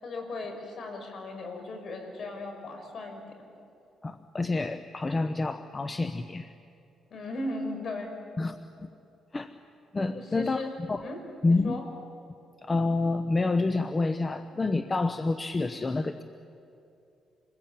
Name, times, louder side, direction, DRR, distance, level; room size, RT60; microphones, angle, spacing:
voice 1, 0.0-3.2 7.1-8.1 10.1-10.7 11.0-11.2 11.5-11.8, left 2 dB, 55° left, 4 dB, 5.7 m, -37 dB
voice 2, 4.0-6.5 8.4-8.9 9.3-9.5 9.9-10.6 10.9-11.0 11.4-11.8 12.6-16.2, left 3 dB, 25° left, 10 dB, 0.9 m, -28 dB
27.0 x 21.0 x 8.9 m, 2.7 s
cardioid pair, 90°, 0 cm